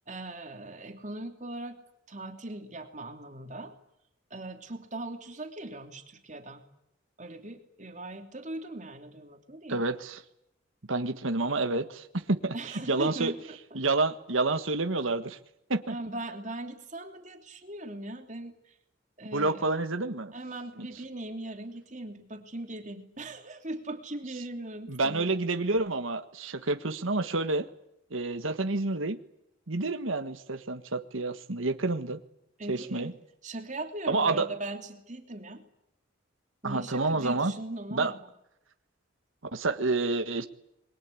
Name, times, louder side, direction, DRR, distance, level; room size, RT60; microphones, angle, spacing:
voice 1, 0.1-1.8 2.1-3.7 4.3-6.6 7.2-9.8 12.5-13.6 15.9-18.7 19.2-19.6 20.3-25.3 32.6-33.1 33.4-35.6 36.6-38.2, right 2 dB, 40° right, 5 dB, 3.0 m, -39 dB
voice 2, 9.7-10.2 10.9-13.3 13.7-15.4 15.7-15.9 19.3-20.3 24.9-27.7 28.1-29.2 29.7-32.2 32.7-33.1 34.1-34.5 36.6-37.5 37.9-38.1 39.5-40.5, right 3 dB, 85° right, 8 dB, 1.6 m, -29 dB
28.5 x 23.0 x 8.6 m, 0.80 s
head